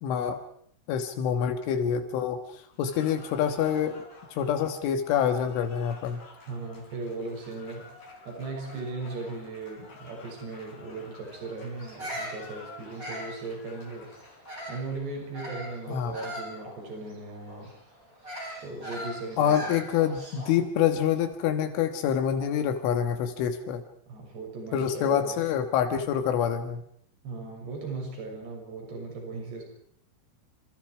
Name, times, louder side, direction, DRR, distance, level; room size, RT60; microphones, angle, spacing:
voice 1, 0.0-0.4 0.9-6.2 15.9-16.1 19.4-23.8 24.7-26.8, left 8 dB, 80° left, 7 dB, 4.0 m, -26 dB
Cheering / Applause, 2.7-15.3, left 2 dB, 40° left, 6.7 m, -50 dB
voice 2, 6.5-14.1 14.7-17.7 18.6-19.8 24.1-25.5 27.2-29.6, right 3 dB, 60° right, 1 dB, 8.7 m, -38 dB
Bird vocalization bird call bird song, 11.8-14.9 15.3-20.6, equal, 15° right, 8.0 m, -40 dB
28.5 x 28.0 x 4.9 m, 0.67 s
omnidirectional pair, 5.5 m